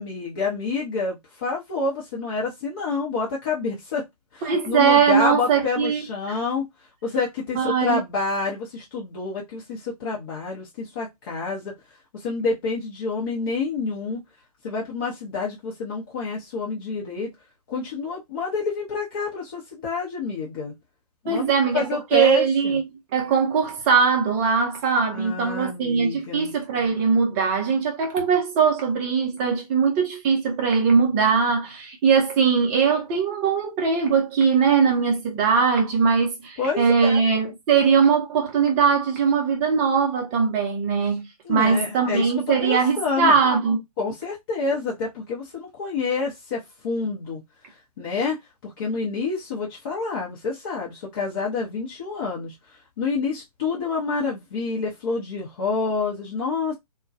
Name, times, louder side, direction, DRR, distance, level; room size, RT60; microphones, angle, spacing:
voice 1, 0.0-4.0 4.3-6.7 7.0-11.7 12.1-14.2 14.6-17.3 17.7-20.7 21.2-22.8 25.1-26.5 36.6-37.2 41.4-43.4 44.0-47.4 48.0-52.5 53.0-56.7, left 4 dB, 35° left, 0.7 m, -28 dB
voice 2, 4.4-6.4 7.5-8.0 21.3-22.8 23.1-43.8, right 6 dB, 20° right, 0.6 m, -21 dB
2.2 x 2.2 x 2.5 m
figure-of-eight pair, 135°, 20 cm